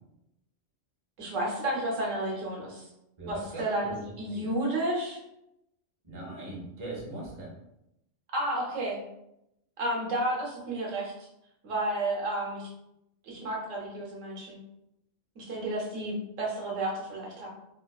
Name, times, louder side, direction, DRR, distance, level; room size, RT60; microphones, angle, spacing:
voice 1, 1.2-2.9 3.3-5.2 8.3-9.0 9.8-11.3 11.6-12.7 13.2-14.6 15.4-17.5, right 1 dB, 90° right, -2 dB, 1.2 m, -31 dB
voice 2, 3.2-3.9 4.3-4.4 6.0-7.5, right 1 dB, 30° right, -3 dB, 0.7 m, -40 dB
3.7 x 2.3 x 2.3 m, 0.84 s
omnidirectional pair, 1.3 m